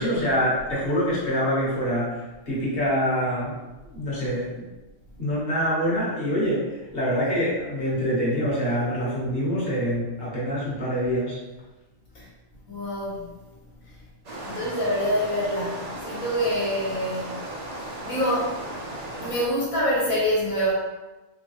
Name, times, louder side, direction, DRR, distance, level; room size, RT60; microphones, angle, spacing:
voice 1, 0.0-3.6 3.9-4.7 5.2-11.4, equal, 45° left, -7 dB, 1.4 m, -25 dB
voice 2, 12.7-13.3 13.8-14.0 14.4-17.4 17.7-18.6 19.2-20.7, equal, 70° left, -7 dB, 1.6 m, -26 dB
sound 1, 14.2-19.4, right 1 dB, 50° right, 0.5 m, -36 dB
3.7 x 3.5 x 3.0 m, 1.1 s
omnidirectional pair, 1.4 m